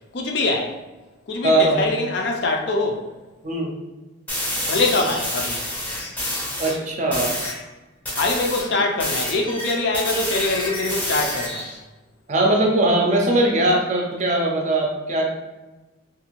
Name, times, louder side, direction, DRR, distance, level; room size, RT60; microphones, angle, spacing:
voice 1, 0.1-0.7 1.3-3.0 4.7-5.6 8.1-11.7, left 2 dB, 55° left, 2 dB, 0.4 m, -23 dB
voice 2, 1.4-1.9 3.4-3.7 6.6-7.3 12.3-15.3, right 1 dB, 35° right, 0 dB, 0.4 m, -20 dB
sound 1, 4.3-6.8 7.1-7.6 8.0-11.7, left 1 dB, 10° left, 0.6 m, -28 dB
2.6 x 2.5 x 2.9 m, 1.1 s
head